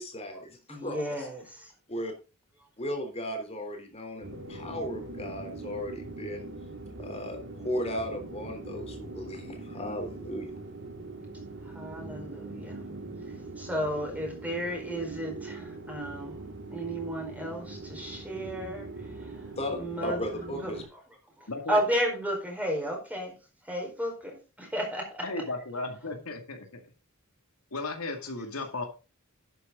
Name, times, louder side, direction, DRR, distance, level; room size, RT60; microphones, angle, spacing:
voice 1, 0.0-1.2 1.9-2.1 2.8-6.5 7.0-10.5 19.6-20.8, equal, 30° left, 3.4 m, -36 dB
voice 2, 0.7-1.7 2.5-2.7 2.9-3.1 11.6-12.8 13.2-26.1, equal, 5° right, 4.6 m, -34 dB
sound 1, 4.2-20.8, right 3 dB, 55° right, 2.5 m, -42 dB
voice 3, 21.5-21.8 25.2-26.8 27.7-28.8, left 2 dB, 75° left, 2.3 m, -35 dB
11.5 x 9.3 x 3.8 m
head